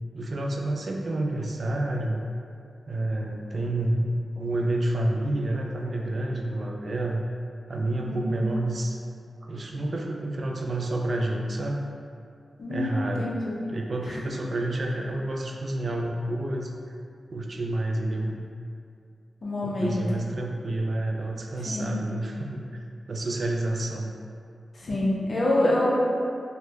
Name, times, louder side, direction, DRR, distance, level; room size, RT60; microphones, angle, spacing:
voice 1, 0.1-2.2 2.9-7.2 7.7-9.0 9.4-11.8 12.7-13.3 13.7-16.7 17.3-18.4 19.6-22.7 23.1-24.2, right 1 dB, 50° right, 1 dB, 0.3 m, -29 dB
voice 2, 8.0-8.5 12.6-13.6 14.1-14.2 19.4-20.0 21.7-22.0 24.7-26.0, left 1 dB, 55° left, -5 dB, 0.6 m, -26 dB
3.4 x 2.1 x 3.0 m, 2.3 s
wide cardioid pair, 85°, 0 cm